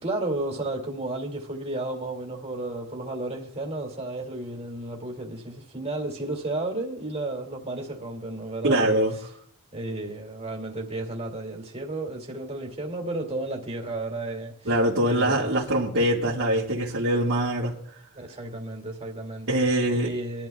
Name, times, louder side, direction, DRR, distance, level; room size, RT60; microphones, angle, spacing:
voice 1, 0.0-9.0 9.7-14.7 15.1-15.5 18.1-19.6 19.9-20.5, right 2 dB, 30° right, 2.5 m, -33 dB
voice 2, 8.6-9.2 14.7-17.7 19.5-20.1, right 1 dB, 60° right, 2.0 m, -23 dB
22.0 x 12.0 x 2.4 m
head